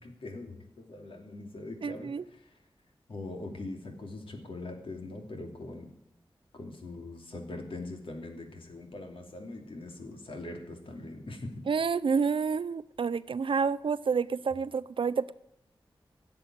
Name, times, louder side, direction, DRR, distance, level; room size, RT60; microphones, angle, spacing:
voice 1, 0.0-2.5 3.1-5.9 6.5-11.6, left 2 dB, 80° left, 3 dB, 2.8 m, -42 dB
voice 2, 1.8-2.2 11.7-15.3, right 5 dB, 70° right, 15 dB, 0.6 m, -29 dB
16.5 x 7.7 x 9.3 m, 0.76 s
wide cardioid pair, 95°, 9 cm